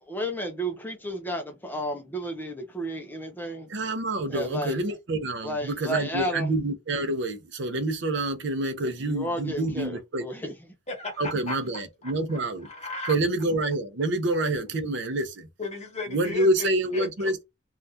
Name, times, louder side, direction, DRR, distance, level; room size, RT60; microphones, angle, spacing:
voice 1, 0.0-3.7 4.3-4.8 5.4-6.5 8.8-10.5, equal, 10° left, 0.5 m, -32 dB
voice 2, 3.7-10.2 11.2-12.7 13.1-15.5 16.1-17.4, right 2 dB, 60° right, 0.6 m, -27 dB
voice 3, 10.9-11.6 12.0-12.4 12.6-13.1 15.6-16.7 16.9-17.4, left 3 dB, 35° left, 0.9 m, -35 dB
3.3 x 2.4 x 2.6 m
head